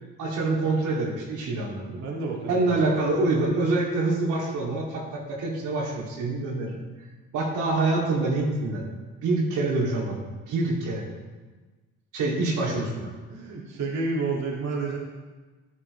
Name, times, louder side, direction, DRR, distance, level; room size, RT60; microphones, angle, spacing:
voice 1, 0.2-2.0 2.5-6.8 7.3-8.9 9.2-10.2 10.5-11.1 12.1-13.1, right 2 dB, 90° right, -3 dB, 2.7 m, -26 dB
voice 2, 2.0-2.7 13.3-15.0, right 3 dB, 60° right, -3 dB, 2.2 m, -30 dB
12.5 x 11.0 x 3.3 m, 1.3 s
cardioid pair, 90°, 30 cm